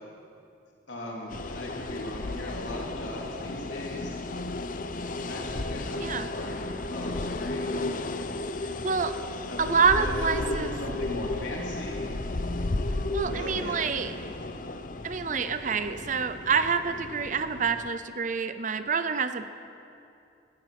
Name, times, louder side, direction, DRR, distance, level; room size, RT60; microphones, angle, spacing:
voice 1, 0.9-4.2 5.3-7.8 9.5-9.7 10.0-12.1 13.2-14.3, left 1 dB, 80° left, -3 dB, 3.5 m, -38 dB
sound 1, 1.3-17.9, left 2 dB, 45° left, 0.6 m, -34 dB
voice 2, 8.8-9.1 9.6-10.7 13.1-14.1 15.0-19.5, right 5 dB, 40° right, 11 dB, 0.6 m, -27 dB
17.5 x 14.0 x 5.9 m, 2.6 s
head